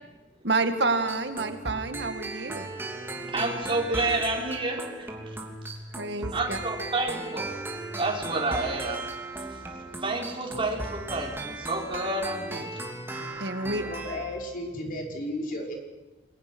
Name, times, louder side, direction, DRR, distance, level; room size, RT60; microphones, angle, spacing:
voice 1, 0.4-2.7 5.9-6.6 13.4-13.9, right 3 dB, 70° right, 8 dB, 2.1 m, -28 dB
sound 1, 0.9-14.4, right 2 dB, 15° right, 3.1 m, -37 dB
voice 2, 3.2-5.1 6.3-7.5 8.0-9.0 10.0-12.7 14.7-15.0, right 2 dB, 30° right, -1 dB, 4.8 m, -29 dB
voice 3, 13.6-15.7, left 1 dB, 50° left, 1 dB, 5.4 m, -34 dB
28.0 x 21.5 x 6.3 m, 1.2 s
head